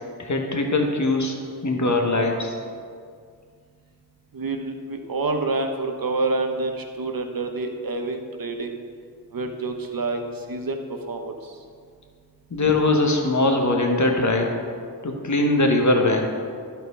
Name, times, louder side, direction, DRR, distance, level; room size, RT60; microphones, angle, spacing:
voice 1, 0.2-2.5 12.5-14.6 15.0-16.3, left 2 dB, 45° left, 2 dB, 1.4 m, -21 dB
voice 2, 4.3-8.8 9.3-10.2 10.5-11.5, right 3 dB, 60° right, 4 dB, 1.1 m, -28 dB
11.5 x 4.5 x 5.6 m, 2.1 s
cardioid pair, 45°, 39 cm